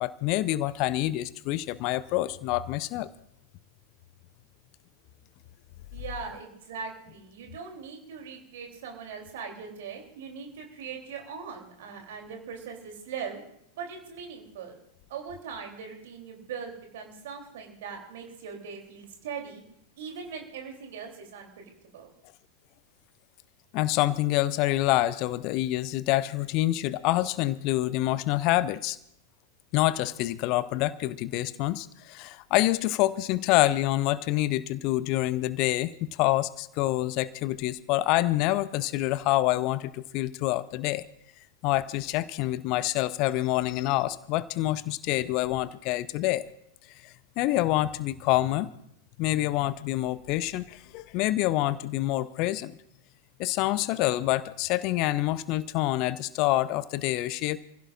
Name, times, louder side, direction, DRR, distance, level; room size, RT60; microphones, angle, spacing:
voice 1, 0.0-3.1 23.7-29.0 29.7-41.0 41.6-46.4 47.0-48.7 49.2-52.7 53.4-57.6, left 16 dB, 40° left, 18 dB, 0.6 m, -27 dB
voice 2, 5.9-13.4 13.8-14.7 15.1-19.6 20.0-22.1, right 6 dB, 55° right, 2 dB, 3.1 m, -40 dB
28.0 x 16.0 x 2.5 m, 0.74 s
figure-of-eight pair, 90°, 0 cm